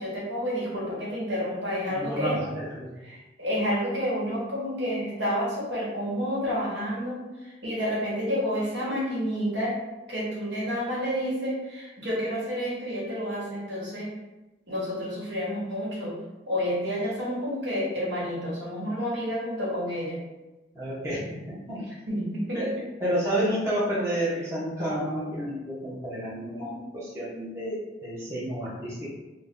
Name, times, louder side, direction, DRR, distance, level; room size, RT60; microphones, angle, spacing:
voice 1, 0.0-2.4 3.0-9.8 10.1-14.1 14.7-16.1 16.5-20.2 22.1-22.9, equal, 65° right, -7 dB, 1.2 m, -30 dB
voice 2, 1.9-2.9 20.7-21.9 22.5-29.1, equal, 15° right, -10 dB, 0.8 m, -30 dB
2.6 x 2.2 x 3.5 m, 1.1 s
head